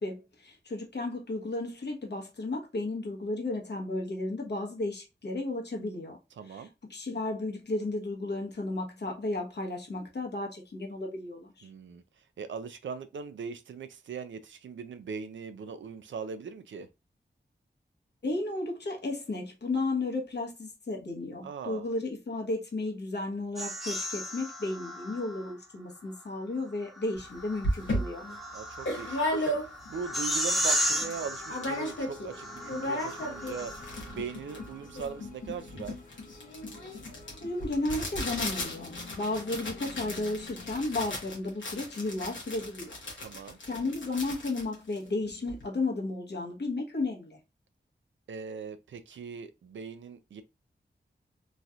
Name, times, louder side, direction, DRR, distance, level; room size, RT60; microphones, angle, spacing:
voice 1, 0.0-6.2 6.5-11.7 18.2-28.2 37.4-43.0 43.6-47.4, left 2 dB, 65° left, 1.1 m, -33 dB
voice 2, 6.4-6.7 11.6-16.9 21.4-21.9 28.5-36.0 43.2-43.6 48.3-50.4, right 6 dB, 80° right, 0.4 m, -40 dB
sound 1, 23.6-25.5 27.0-34.2, equal, ahead, 1.0 m, -34 dB
sound 2, 27.2-27.3 27.6-30.0 30.4-30.5 30.7-31.2 31.5-32.3 32.6-45.6, left 1 dB, 90° left, 1.1 m, -35 dB
sound 3, 29.9-40.8, left 3 dB, 45° left, 0.7 m, -51 dB
3.1 x 2.7 x 2.3 m
cardioid pair, 40°, 19 cm